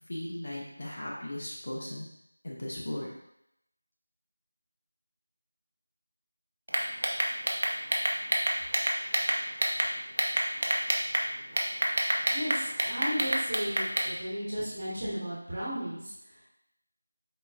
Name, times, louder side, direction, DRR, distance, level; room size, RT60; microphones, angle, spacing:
voice 1, 0.1-2.1 2.4-3.1, left 1 dB, 35° left, -4 dB, 0.7 m, -37 dB
sound 1, 6.7-9.9 10.2-11.2 11.6-14.1, right 1 dB, 55° right, 0.7 m, -27 dB
voice 2, 12.3-16.4, equal, 30° right, -8 dB, 1.3 m, -35 dB
4.6 x 3.9 x 2.4 m, 0.79 s
figure-of-eight pair, 180°, 0 cm